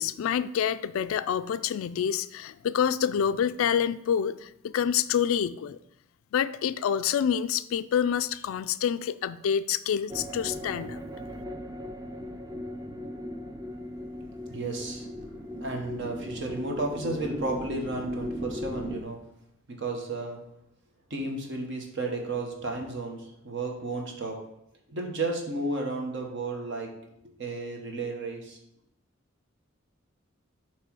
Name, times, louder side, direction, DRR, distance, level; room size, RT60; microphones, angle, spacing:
voice 1, 0.0-5.8 6.3-11.0, left 8 dB, 80° left, 14 dB, 0.3 m, -27 dB
sound 1, 10.1-19.0, left 1 dB, 15° right, 0.5 m, -37 dB
voice 2, 14.5-15.3 15.6-19.2 19.7-20.4 21.1-24.4 24.9-26.9 27.2-28.6, right 2 dB, 60° right, 1 dB, 1.2 m, -33 dB
7.5 x 3.1 x 4.6 m, 0.77 s
head